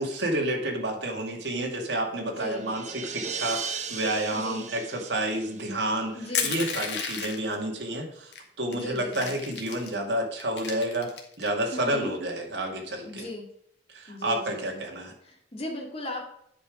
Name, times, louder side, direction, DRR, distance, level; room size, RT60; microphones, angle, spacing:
voice 1, 0.0-8.3 8.6-11.1 11.4-13.3 13.9-15.1, right 1 dB, 85° right, 2 dB, 2.0 m, -30 dB
sound 1, 2.0-6.4, right 5 dB, 40° right, 0.9 m, -38 dB
voice 2, 2.3-2.7 4.3-4.7 6.1-6.6 8.7-9.3 11.7-12.2 13.0-13.5 14.1-14.8 15.2-16.2, left 1 dB, 35° left, 0 dB, 2.3 m, -37 dB
Crushing, 6.3-7.5 8.3-8.4 8.7-9.9 10.4-11.5, left 6 dB, 80° left, 1.7 m, -32 dB
9.6 x 5.5 x 5.1 m, 0.71 s
head